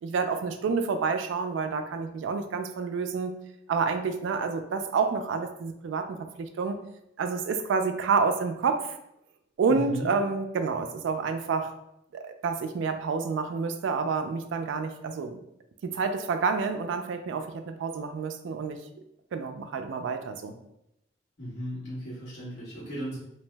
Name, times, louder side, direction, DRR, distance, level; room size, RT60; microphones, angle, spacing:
voice 1, 0.0-3.3 3.7-6.8 7.2-9.0 9.6-11.7 12.2-15.4 15.8-18.8 19.3-20.5, right 5 dB, 80° right, 7 dB, 0.3 m, -29 dB
voice 2, 9.7-10.1 21.4-23.2, equal, 55° left, -10 dB, 1.3 m, -36 dB
2.6 x 2.0 x 3.2 m, 0.81 s
head